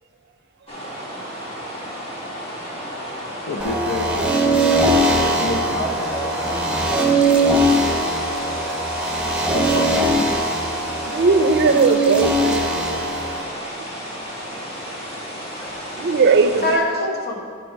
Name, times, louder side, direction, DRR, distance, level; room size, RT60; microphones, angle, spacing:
sound 1, 0.7-16.8, equal, 30° left, 1.4 m, -32 dB
voice 1, 3.5-4.6 5.1-5.8 9.5-10.3, left 2 dB, 75° left, 0.7 m, -28 dB
sound 2, 3.6-13.4, right 1 dB, 5° right, 0.8 m, -21 dB
voice 2, 5.1-6.9 16.6-17.4, left 1 dB, 50° left, 1.3 m, -27 dB
voice 3, 11.1-13.2 16.0-16.8, right 4 dB, 55° right, 0.4 m, -18 dB
10.5 x 4.4 x 4.8 m
head